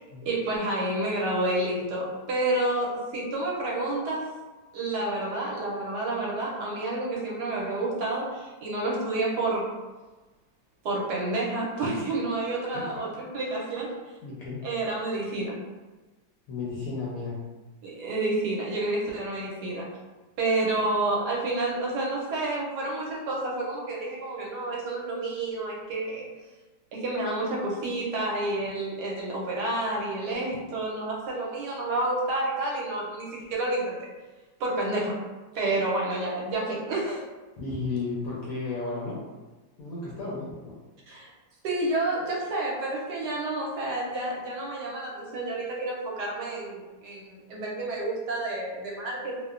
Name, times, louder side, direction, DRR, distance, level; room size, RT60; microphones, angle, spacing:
voice 1, 0.2-4.3 4.7-9.6 10.8-13.9 14.6-15.6 17.8-19.9 20.4-26.3 26.9-34.1 34.6-35.2 35.5-37.2 41.1-41.3 41.6-49.4, right 2 dB, 75° right, -3 dB, 1.1 m, -29 dB
voice 2, 14.2-14.7 16.5-17.4 37.6-39.2 39.8-40.5, left 3 dB, 70° left, -6 dB, 0.8 m, -33 dB
2.9 x 2.1 x 2.3 m, 1.2 s
omnidirectional pair, 1.9 m